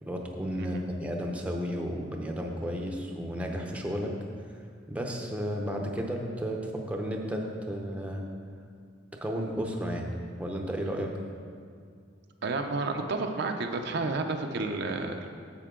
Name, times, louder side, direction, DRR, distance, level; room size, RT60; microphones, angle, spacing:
voice 1, 0.0-4.1 4.9-8.2 9.2-11.1, equal, 5° right, 1 dB, 0.7 m, -33 dB
voice 2, 12.4-15.3, right 3 dB, 60° right, 4 dB, 0.6 m, -31 dB
10.0 x 7.5 x 3.7 m, 2.2 s
head